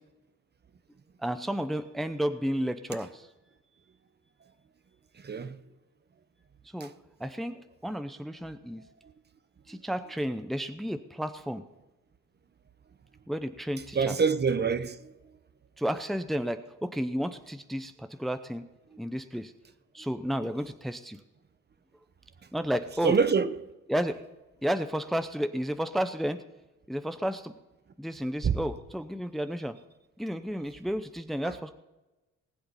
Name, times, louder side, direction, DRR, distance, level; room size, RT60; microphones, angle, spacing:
voice 1, 1.2-3.3 6.7-6.9 7.2-8.8 9.7-11.6 13.3-14.2 15.8-18.6 19.0-19.5 19.9-21.2 22.5-23.2 23.9-24.2 24.6-26.4 26.9-27.5 28.0-29.8 30.2-31.7, equal, ahead, 0.7 m, -32 dB
voice 2, 5.2-5.6 13.9-15.0 23.0-23.5 28.4-28.5, right 5 dB, 35° right, 1.0 m, -25 dB
19.5 x 7.8 x 5.5 m
cardioid pair, 90°, 30 cm